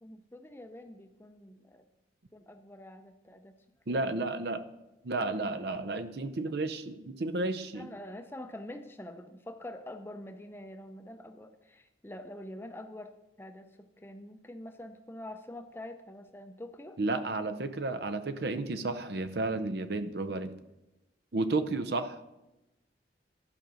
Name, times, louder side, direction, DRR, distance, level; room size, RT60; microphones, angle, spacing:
voice 1, 0.0-1.8 2.3-3.5 3.9-4.3 5.3-5.4 6.5-6.6 7.7-13.1 13.4-13.7 14.0-17.0, left 1 dB, 10° left, 7 dB, 0.5 m, -46 dB
voice 2, 3.9-4.6 5.0-7.9 17.0-20.5 21.3-22.2, right 2 dB, 60° right, 11 dB, 0.6 m, -32 dB
12.0 x 5.2 x 6.2 m, 0.98 s
head